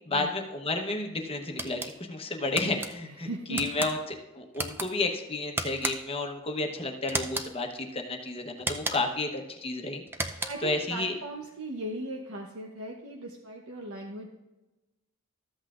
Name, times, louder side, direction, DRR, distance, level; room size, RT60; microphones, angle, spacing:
voice 1, 0.1-1.8 2.1-11.1, left 2 dB, 25° left, 4 dB, 1.0 m, -32 dB
sound 1, 1.6-1.9 2.6-2.9 3.5-3.9 4.5-4.9 5.6-6.2 7.1-7.5 8.6-9.2 10.1-10.7, right 2 dB, 10° right, 0.5 m, -34 dB
voice 2, 3.1-3.8 10.4-14.3, right 1 dB, 75° right, 0 dB, 0.9 m, -38 dB
13.5 x 8.1 x 2.5 m, 1.0 s
head